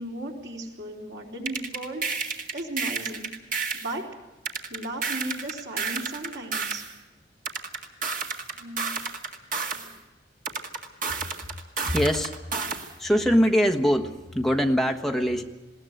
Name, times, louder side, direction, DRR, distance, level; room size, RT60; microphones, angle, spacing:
voice 1, 0.0-3.3 3.7-4.1 4.7-6.8 8.5-9.0 9.7-10.0, right 1 dB, 70° right, 0 dB, 3.8 m, -36 dB
sound 1, 1.5-3.9 4.5-6.9 7.5-9.9 10.4-12.9, right 5 dB, 45° right, 2.0 m, -31 dB
voice 2, 11.8-12.3 12.6-12.7 13.0-15.4, equal, ahead, 4 dB, 1.3 m, -23 dB
20.5 x 17.5 x 8.0 m, 1.1 s
head